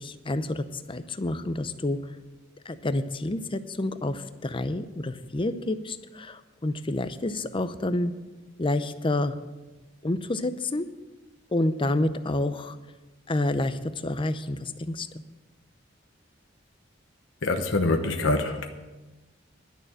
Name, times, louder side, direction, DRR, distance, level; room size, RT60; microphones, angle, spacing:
voice 1, 0.0-2.2 2.6-8.1 8.6-9.3 10.0-10.9 11.5-12.8 13.3-15.1, left 2 dB, 25° left, 11 dB, 0.6 m, -29 dB
voice 2, 17.4-18.7, left 2 dB, 85° left, 5 dB, 1.0 m, -25 dB
11.5 x 6.6 x 8.9 m, 1.2 s
head